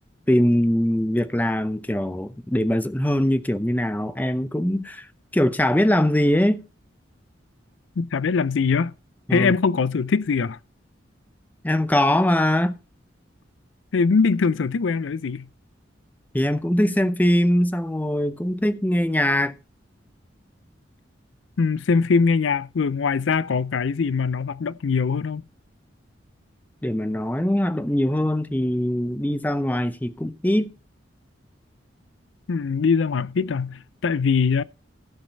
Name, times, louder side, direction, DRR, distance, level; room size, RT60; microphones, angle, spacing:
voice 1, 0.3-5.1 5.3-6.6 9.3-9.5 11.6-12.8 16.3-19.6 26.8-30.7, left 1 dB, 10° left, 0.6 m, -22 dB
voice 2, 8.0-8.9 9.3-10.6 13.9-15.5 21.6-25.4 32.5-34.6, left 5 dB, 85° left, 0.5 m, -22 dB
15.5 x 5.2 x 5.3 m
head